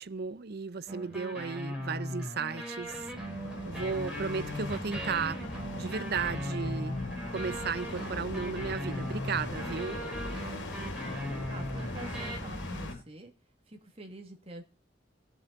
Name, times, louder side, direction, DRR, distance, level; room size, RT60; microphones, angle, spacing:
voice 1, 0.0-3.0 3.7-5.4 5.8-7.0 7.3-10.0, right 5 dB, 55° right, 0.6 m, -34 dB
sound 1, 0.9-12.4, equal, 5° right, 4.1 m, -39 dB
sound 2, 2.8-12.9, left 1 dB, 85° left, 3.7 m, -40 dB
sound 3, 5.4-13.0, left 2 dB, 40° left, 1.2 m, -44 dB
voice 2, 11.5-13.3 13.7-14.6, right 2 dB, 30° right, 2.3 m, -46 dB
20.5 x 7.1 x 4.0 m
head